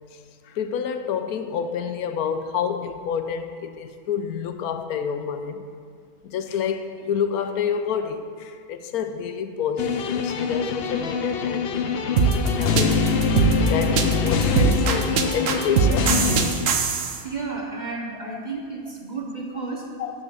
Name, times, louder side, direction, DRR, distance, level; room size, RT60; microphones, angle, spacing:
voice 1, 0.4-5.6 6.2-13.0 13.7-16.7 20.0-20.1, left 7 dB, 80° left, 8 dB, 1.1 m, -29 dB
sound 1, 9.8-16.5, left 5 dB, 55° left, 0.7 m, -24 dB
sound 2, 12.2-17.2, right 6 dB, 65° right, 1.1 m, -21 dB
voice 2, 17.2-19.9, right 3 dB, 35° right, -1 dB, 0.9 m, -32 dB
7.5 x 7.3 x 6.2 m, 2.1 s
omnidirectional pair, 1.6 m